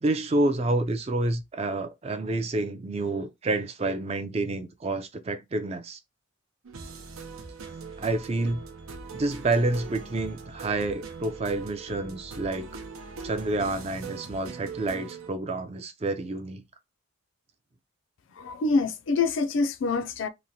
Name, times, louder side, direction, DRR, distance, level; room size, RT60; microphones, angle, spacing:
voice 1, 0.0-6.0 8.0-8.6 9.1-12.7 13.2-16.6, right 2 dB, 30° right, 0.4 m, -28 dB
sound 1, 6.6-15.3, right 4 dB, 85° right, 0.6 m, -41 dB
voice 2, 18.3-20.3, left 4 dB, 65° left, 0.4 m, -26 dB
2.9 x 2.1 x 2.6 m
head